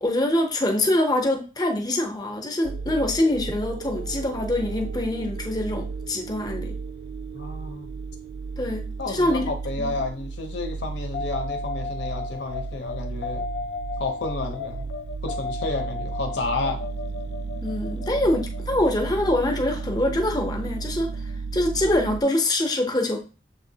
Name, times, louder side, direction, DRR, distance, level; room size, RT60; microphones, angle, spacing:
voice 1, 0.0-6.7 8.6-9.5 9.8-10.0 17.6-21.1 21.5-23.2, left 1 dB, 20° left, 3 dB, 0.6 m, -24 dB
sound 1, 2.6-22.2, right 4 dB, 60° right, 0.3 m, -34 dB
voice 2, 7.3-7.9 9.0-13.4 14.0-14.9 15.2-16.8, left 3 dB, 80° left, 3 dB, 0.7 m, -31 dB
sound 2, 11.1-21.3, left 4 dB, 60° left, 0.3 m, -36 dB
6.7 x 2.8 x 2.7 m, 0.35 s
head